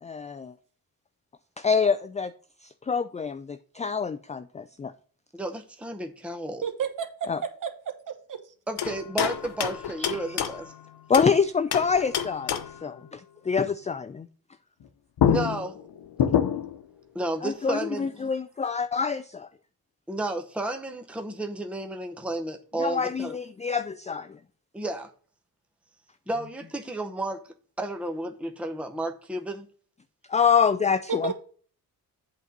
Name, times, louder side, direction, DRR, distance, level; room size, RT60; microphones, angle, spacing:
voice 1, 0.0-0.6 1.6-2.3 2.6-4.9 7.3-7.4 10.0-10.2 11.1-14.3 17.4-19.5 22.8-24.4 30.3-31.3, left 6 dB, 20° left, 0.3 m, -26 dB
voice 2, 5.3-6.6 8.7-10.7 15.3-15.8 17.1-18.1 20.1-23.4 24.7-25.1 26.3-27.4 27.8-29.7, right 2 dB, 5° right, 0.8 m, -32 dB
voice 3, 6.6-7.7 8.1-8.5 31.1-31.3, right 7 dB, 50° right, 1.2 m, -32 dB
sound 1, 8.8-11.4 11.7-12.9 14.8-14.9 15.2-16.8, left 9 dB, 80° left, 0.9 m, -27 dB
8.1 x 4.0 x 5.8 m
cardioid pair, 110°, 39 cm